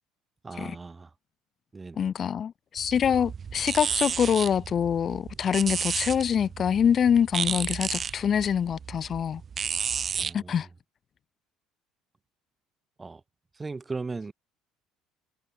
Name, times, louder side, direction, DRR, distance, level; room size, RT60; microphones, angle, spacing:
voice 1, 0.4-1.1 1.7-2.0 10.1-10.7 13.0-13.2 13.6-14.3, right 3 dB, 20° right, 1.3 m, -37 dB
voice 2, 2.0-9.4 10.3-10.7, left 8 dB, 45° left, 0.9 m, -25 dB
sound 1, 2.8-10.3, right 6 dB, 40° right, 2.1 m, -32 dB
hypercardioid pair, 65°, 0 cm